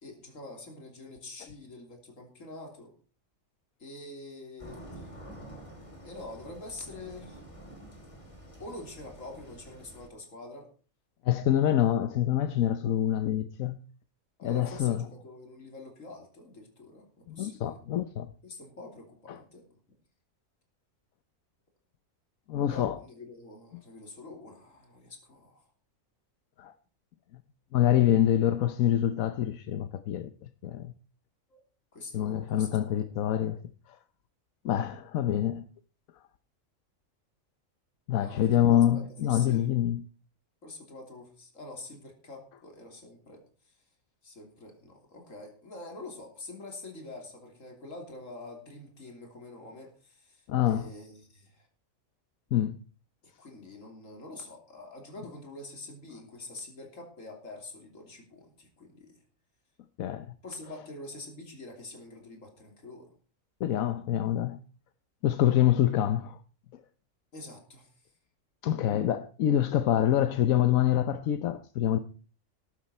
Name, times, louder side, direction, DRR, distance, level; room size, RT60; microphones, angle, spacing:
voice 1, 0.0-2.9 3.8-5.1 6.0-7.4 8.6-10.7 14.4-17.8 18.4-19.7 22.7-25.6 31.5-31.6 31.9-33.0 38.2-39.7 40.6-43.8 44.2-51.7 53.4-59.2 60.4-63.1 67.3-68.1, left 2 dB, 70° left, 3.4 m, -46 dB
sound 1, 4.6-10.1, right 1 dB, 25° left, 3.0 m, -48 dB
voice 2, 11.2-13.8 14.4-15.0 17.3-18.3 19.3-19.4 22.5-23.0 26.6-26.7 27.7-30.9 32.1-33.6 34.6-35.6 38.1-40.0 50.5-50.9 52.5-52.8 60.0-60.3 63.6-64.6 65.2-66.4 68.6-72.0, left 11 dB, 85° left, 1.2 m, -26 dB
14.0 x 12.0 x 4.3 m
omnidirectional pair, 1.4 m